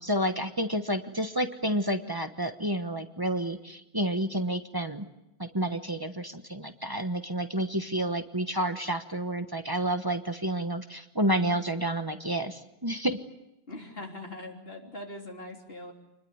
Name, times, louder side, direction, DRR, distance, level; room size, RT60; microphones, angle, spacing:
voice 1, 0.0-5.1 5.4-13.2, right 1 dB, 20° right, 7 dB, 1.2 m, -30 dB
voice 2, 13.7-15.9, left 1 dB, 70° left, 0 dB, 3.8 m, -41 dB
27.5 x 21.0 x 9.5 m, 0.91 s
omnidirectional pair, 1.0 m